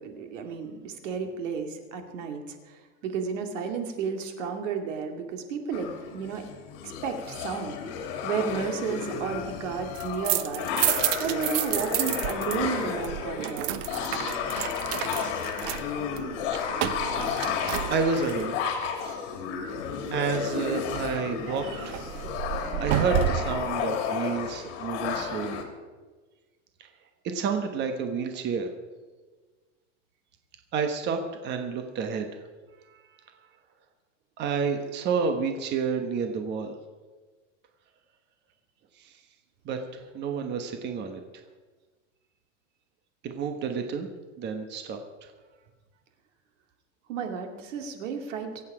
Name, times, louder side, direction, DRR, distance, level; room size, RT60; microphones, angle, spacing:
voice 1, 0.0-6.4 6.8-7.8 8.2-10.7 11.2-13.8 23.3-23.4 47.1-48.6, right 6 dB, 80° right, 5 dB, 2.4 m, -32 dB
sound 1, 5.7-25.6, left 7 dB, 65° left, 2.7 m, -32 dB
sound 2, 9.8-12.6 12.8-18.4 21.5-23.7, right 13 dB, 45° right, 0.8 m, -30 dB
voice 2, 17.9-19.4 20.1-22.0 22.8-25.6 26.8-26.9 27.2-28.7 30.7-32.4 32.9-33.0 34.4-36.7 39.0-39.1 39.6-41.2 43.2-44.1 44.4-45.0, right 5 dB, 30° right, 5 dB, 1.2 m, -30 dB
24.0 x 8.4 x 4.9 m, 1.3 s
supercardioid pair, 155°, 37 cm